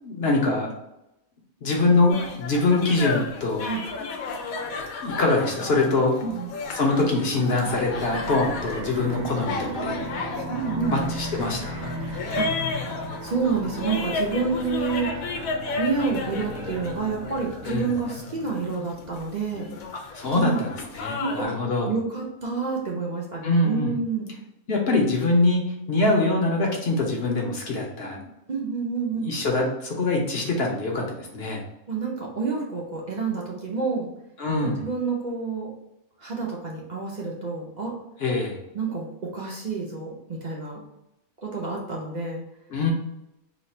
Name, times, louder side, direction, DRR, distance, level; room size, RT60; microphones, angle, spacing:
voice 1, 0.0-0.7 1.6-3.6 5.0-6.2 6.7-10.3 10.9-11.9 17.6-17.9 20.1-21.9 23.4-23.9 24.7-28.2 29.2-31.6 34.4-34.8 38.2-38.6 42.7-42.9, left 2 dB, 50° left, 0 dB, 0.9 m, -24 dB
sound 1, 2.1-21.4, left 3 dB, 75° left, 1.0 m, -33 dB
sound 2, 7.5-18.2, equal, 70° right, 1.2 m, -36 dB
voice 2, 10.5-11.0 12.3-12.8 13.2-15.1 15.8-19.7 20.3-20.7 21.2-21.5 21.8-24.3 28.5-29.3 31.9-34.1 34.6-35.7 36.2-37.9 38.7-40.8 41.4-42.4, right 4 dB, 50° right, -2 dB, 0.5 m, -28 dB
3.0 x 2.4 x 4.2 m, 0.88 s
omnidirectional pair, 1.5 m